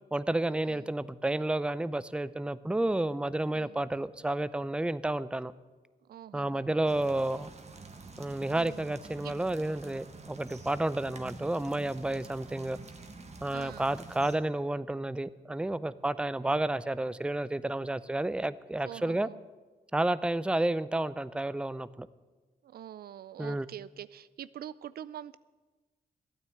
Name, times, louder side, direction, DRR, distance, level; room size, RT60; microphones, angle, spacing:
voice 1, 0.1-5.5 6.3-7.5 8.2-12.8 13.4-19.3 19.9-22.1 23.4-23.7, right 1 dB, 5° right, 17 dB, 0.5 m, -31 dB
voice 2, 6.1-6.9 8.5-8.9 9.2-9.3 13.5-14.0 18.8-19.4 22.6-25.4, right 11 dB, 70° right, 18 dB, 0.4 m, -45 dB
sound 1, 6.9-14.4, right 3 dB, 40° right, 1.5 m, -48 dB
12.5 x 9.2 x 7.7 m, 1.3 s
cardioid pair, 55°, 16 cm